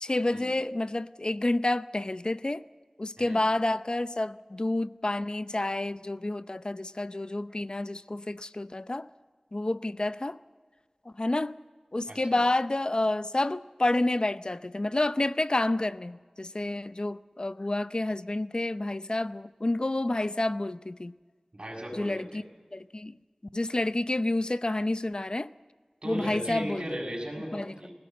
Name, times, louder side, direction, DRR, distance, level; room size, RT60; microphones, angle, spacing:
voice 1, 0.0-2.6 3.0-9.1 9.5-10.4 11.2-11.5 11.9-21.1 21.9-22.4 22.7-23.2 23.5-25.5 26.0-26.9 27.5-27.7, left 2 dB, 45° left, 0.6 m, -29 dB
voice 2, 12.1-12.4 21.5-22.4 26.0-27.9, equal, 50° right, 6.7 m, -37 dB
21.0 x 17.5 x 7.9 m
wide cardioid pair, 55°, 2 cm